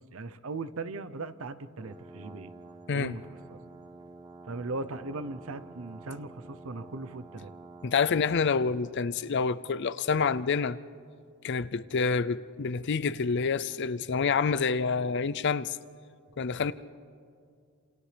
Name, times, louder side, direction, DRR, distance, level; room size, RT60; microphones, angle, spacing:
voice 1, 0.1-2.5 2.9-3.2 4.5-7.5, right 3 dB, 70° right, 0.7 m, -38 dB
sound 1, 1.8-8.5, right 3 dB, 20° right, 1.2 m, -49 dB
voice 2, 7.8-10.8 11.4-15.8 16.4-16.7, left 5 dB, 55° left, 0.5 m, -27 dB
28.5 x 28.0 x 3.4 m
head